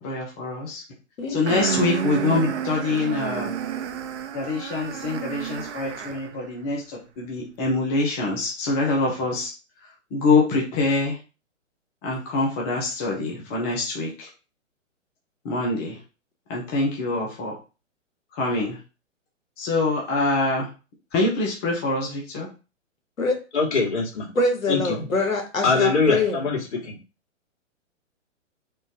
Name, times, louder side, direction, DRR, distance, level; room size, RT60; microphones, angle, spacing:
voice 1, 0.0-0.8 1.3-3.5 4.3-9.5 9.8-11.2 12.0-14.3 15.4-16.0 16.5-17.5 18.3-18.8 19.6-20.7 21.1-22.5, left 3 dB, 10° left, -2 dB, 0.4 m, -25 dB
sound 1, 1.5-6.4, right 8 dB, 60° right, 0.6 m, -30 dB
voice 2, 23.5-24.3 24.7-25.1 25.6-27.0, left 4 dB, 60° left, -2 dB, 2.0 m, -23 dB
voice 3, 24.3-26.4, left 2 dB, 85° left, 2 dB, 1.3 m, -24 dB
3.6 x 2.5 x 3.9 m, 0.31 s
hypercardioid pair, 130°, 39 cm